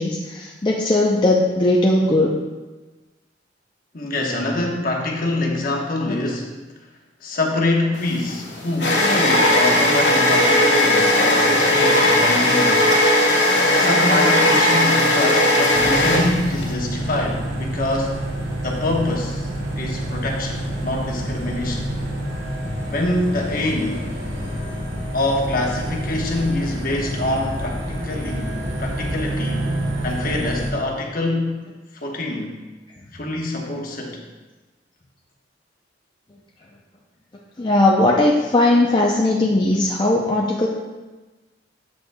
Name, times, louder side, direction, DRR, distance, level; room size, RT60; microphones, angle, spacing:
voice 1, 0.0-2.4 6.1-6.2 9.1-9.2 37.6-40.7, left 2 dB, 25° left, -3 dB, 0.5 m, -18 dB
voice 2, 3.9-6.5 7.2-12.9 13.7-18.2 18.6-19.5 19.8-21.9 22.9-24.0 25.1-28.5 28.8-29.7 30.0-31.6 32.0-32.5 33.1-34.2, left 2 dB, 50° left, 0 dB, 1.1 m, -25 dB
sound 1, 8.0-16.7, left 1 dB, 70° left, 1.5 m, -17 dB
sound 2, 15.7-30.7, right 1 dB, 90° right, 1.5 m, -28 dB
8.0 x 8.0 x 2.2 m, 1.2 s
head